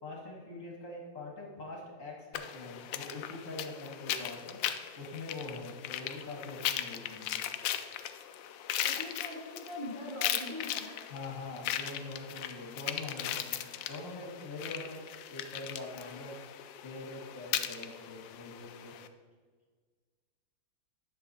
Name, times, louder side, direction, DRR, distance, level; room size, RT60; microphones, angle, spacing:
voice 1, 0.0-4.6 5.0-7.4 11.1-15.0 15.3-16.3 16.8-18.9, left 2 dB, 45° left, -1 dB, 1.8 m, -43 dB
sound 1, 2.3-19.1, left 11 dB, 80° left, 1.3 m, -38 dB
voice 2, 8.8-11.0, left 1 dB, 25° right, -4 dB, 2.3 m, -42 dB
10.0 x 6.6 x 4.2 m, 1.5 s
omnidirectional pair, 2.1 m